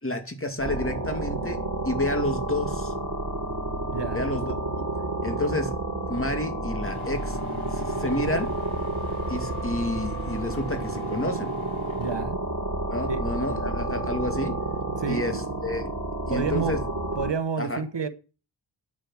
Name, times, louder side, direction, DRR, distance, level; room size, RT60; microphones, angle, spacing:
voice 1, 0.0-2.9 4.1-4.9 5.2-5.7 6.1-7.4 7.6-8.5 9.3-11.6 12.9-14.6 15.1-15.8 16.3-16.8 17.6-17.8, left 1 dB, 25° left, 2.3 m, -30 dB
sound 1, 0.6-17.3, right 2 dB, 40° right, 3.5 m, -30 dB
voice 2, 3.9-4.2 12.0-12.4 13.1-13.3 15.0-15.3 16.3-16.8 17.2-18.1, right 5 dB, 60° right, 1.3 m, -29 dB
sound 2, 6.8-12.2, left 4 dB, 90° left, 4.6 m, -44 dB
9.5 x 8.8 x 7.4 m
wide cardioid pair, 70°, 48 cm